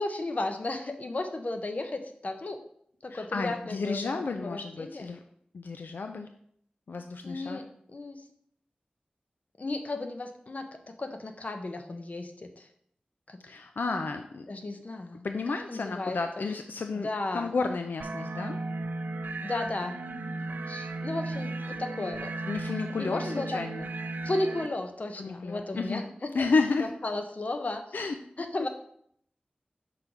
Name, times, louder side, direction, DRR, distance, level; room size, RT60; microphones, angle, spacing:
voice 1, 0.0-2.6 3.0-5.1 7.2-8.2 9.6-12.7 13.3-13.5 14.5-16.5 16.9-17.5 19.4-20.0 20.7-22.3 22.7-23.6 24.2-26.5 26.8-27.8 28.4-28.7, left 2 dB, 50° left, 6 dB, 0.7 m, -34 dB
voice 2, 3.1-5.2 5.5-6.3 6.9-7.6 13.5-14.5 15.2-17.1 17.3-18.6 22.5-23.9 25.2-26.0 26.3-26.9 27.9-28.2, left 4 dB, 85° left, 6 dB, 0.4 m, -31 dB
sound 1, 18.0-24.7, right 2 dB, 80° right, 0.4 m, -35 dB
5.7 x 3.9 x 4.5 m, 0.66 s
wide cardioid pair, 65°, 3 cm